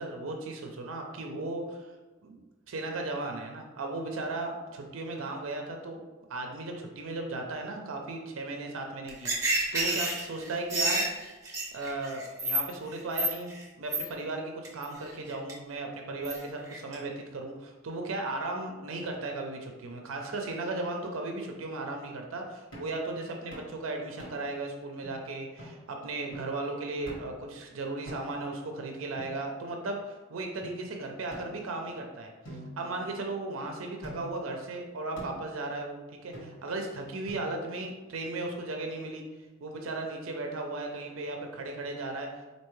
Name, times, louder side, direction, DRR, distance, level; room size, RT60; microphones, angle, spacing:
voice 1, 0.0-1.9 2.2-2.4 2.7-6.0 6.3-11.0 11.7-32.3 32.8-39.2 39.6-42.5, right 2 dB, 85° right, 3 dB, 0.5 m, -36 dB
sound 1, 9.1-12.6 12.9-13.6 13.9-14.0 14.6-14.8 15.3-15.5 16.2-16.4 16.7-16.9, right 1 dB, 15° right, 0.7 m, -29 dB
sound 2, 22.7-23.0 23.5-23.7 24.2-24.6 25.0-25.1 25.6-25.8 26.3-26.6 27.1-27.4 28.1-28.5 29.2-29.9 30.6-30.7 31.3-32.0 32.4-33.5 34.0-34.5 35.2-35.5 36.3-36.8 37.3-37.8, equal, 65° left, 1.4 m, -46 dB
4.4 x 2.7 x 3.1 m, 1.2 s
head